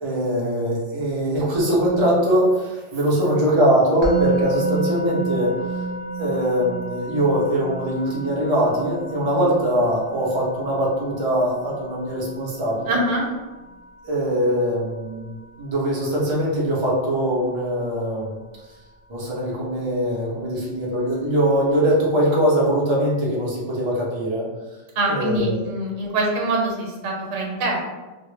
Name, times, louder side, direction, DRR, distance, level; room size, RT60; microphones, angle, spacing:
voice 1, 0.0-5.8 6.1-13.0 14.0-18.4 19.1-24.4 25.1-25.6, equal, 45° right, -5 dB, 0.4 m, -22 dB
Musical instrument, 4.0-15.1, right 2 dB, 85° left, 1.0 m, -30 dB
voice 2, 12.8-13.2 25.0-27.8, right 1 dB, 80° right, 0 dB, 0.9 m, -24 dB
2.1 x 2.1 x 3.0 m, 1.2 s
omnidirectional pair, 1.3 m